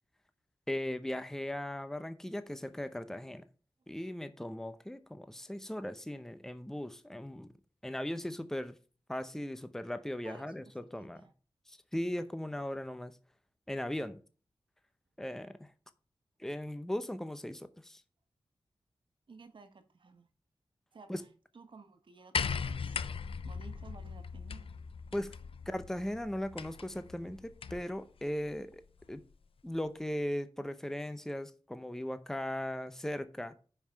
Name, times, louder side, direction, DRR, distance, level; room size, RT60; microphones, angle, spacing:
voice 1, 0.7-3.4 3.9-7.5 7.8-8.7 9.1-11.2 11.7-13.1 13.7-14.2 15.2-15.7 16.4-18.0 21.1-21.2 25.1-25.3 25.7-28.8 29.1-29.2 29.6-33.5, left 1 dB, 5° left, 0.7 m, -38 dB
voice 2, 11.0-11.3 19.3-20.3 20.9-21.3 21.5-23.0 23.4-24.7, right 4 dB, 65° right, 1.4 m, -54 dB
sound 1, 22.3-27.9 29.0-29.1, left 6 dB, 80° left, 0.6 m, -39 dB
9.8 x 5.6 x 4.5 m
wide cardioid pair, 120°, 9 cm